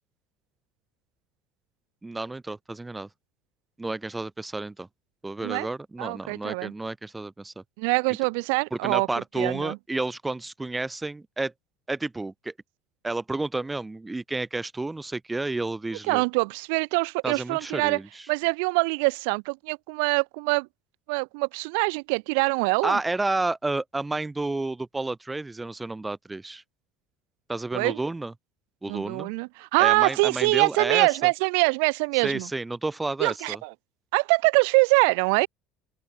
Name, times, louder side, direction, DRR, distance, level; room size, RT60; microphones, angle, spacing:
voice 1, 2.0-3.1 3.8-4.9 5.2-7.5 8.7-11.5 11.9-12.5 13.0-16.2 17.2-18.3 22.8-26.6 27.5-28.3 28.8-29.3 29.8-31.3 32.2-33.6, right 2 dB, 15° right, 3.2 m, -31 dB
voice 2, 6.0-6.7 7.8-9.1 9.4-9.8 16.1-18.0 18.3-20.7 21.1-23.0 27.7-28.0 28.9-32.5 33.2-33.7 34.1-35.5, right 34 dB, 80° right, 4.7 m, -24 dB
open air
supercardioid pair, 95°, 0 cm